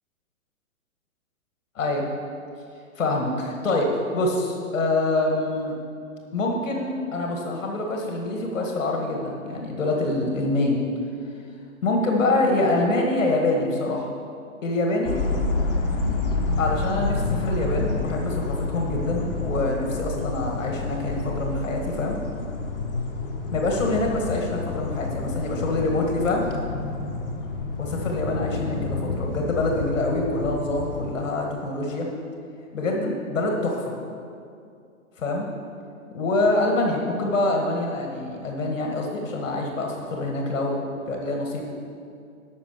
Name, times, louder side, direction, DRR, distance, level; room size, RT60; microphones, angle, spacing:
voice 1, 3.0-5.7 6.3-10.8 11.8-14.1 14.6-15.1 16.6-22.2 23.5-26.5 27.8-32.1 32.7-33.9 35.2-35.5 36.1-41.6, left 2 dB, 65° left, 1 dB, 1.9 m, -25 dB
sound 1, 15.0-31.1, left 3 dB, 40° left, 1.3 m, -29 dB
12.0 x 5.6 x 6.7 m, 2.4 s
hypercardioid pair, 170°, 42 cm